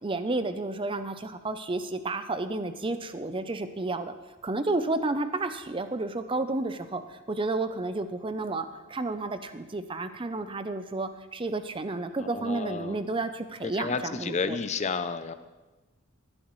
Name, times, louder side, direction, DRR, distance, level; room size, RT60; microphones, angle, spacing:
voice 1, 0.0-4.1 4.4-14.6, right 2 dB, 25° right, 10 dB, 0.6 m, -31 dB
voice 2, 12.2-13.0 13.6-15.3, left 4 dB, 35° left, 10 dB, 0.5 m, -31 dB
18.5 x 10.5 x 3.2 m, 1.2 s
head